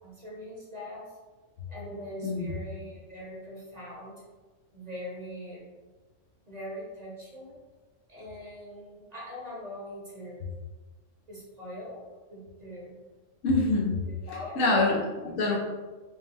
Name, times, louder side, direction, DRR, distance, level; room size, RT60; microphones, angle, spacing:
voice 1, 0.0-1.2 1.7-4.2 4.7-5.6 6.5-7.6 8.1-10.5 11.3-12.0 12.3-13.0 14.3-14.9, equal, 35° right, -4 dB, 0.9 m, -41 dB
voice 2, 13.4-14.0 14.6-15.0 15.2-15.6, left 3 dB, 85° left, -2 dB, 1.2 m, -24 dB
5.0 x 2.1 x 3.4 m, 1.3 s
omnidirectional pair, 1.3 m